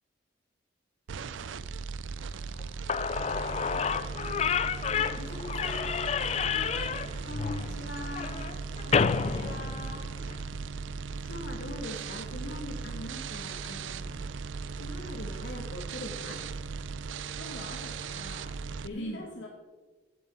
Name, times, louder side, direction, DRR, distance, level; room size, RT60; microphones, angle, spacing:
sound 1, 1.1-18.9, right 5 dB, 75° right, 0.4 m, -38 dB
Slam / Squeak, 2.6-2.7 2.9-10.4, left 6 dB, 35° left, 0.3 m, -30 dB
voice 1, 4.9-6.1 7.2-8.3 11.2-14.3 14.7-16.4 18.9-19.3, left 1 dB, 60° left, 2 dB, 2.1 m, -41 dB
voice 2, 6.4-7.0 8.8-10.1 17.3-19.5, left 2 dB, 80° left, 0 dB, 1.3 m, -44 dB
sound 2, 6.6-11.8, right 1 dB, 15° right, 3.5 m, -55 dB
15.0 x 7.6 x 3.9 m, 1.3 s
head